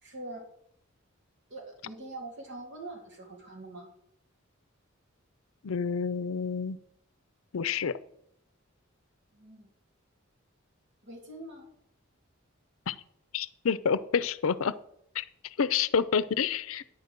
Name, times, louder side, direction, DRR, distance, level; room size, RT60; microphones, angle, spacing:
voice 1, 0.0-0.5 1.5-3.9 9.3-9.7 11.0-11.7, right 2 dB, 60° right, 0 dB, 3.0 m, -43 dB
voice 2, 5.6-6.8 7.5-8.0 12.9-13.0 13.3-14.7 15.1-15.2 15.6-16.8, left 6 dB, 75° left, 16 dB, 0.5 m, -28 dB
9.6 x 5.3 x 7.9 m, 0.73 s
head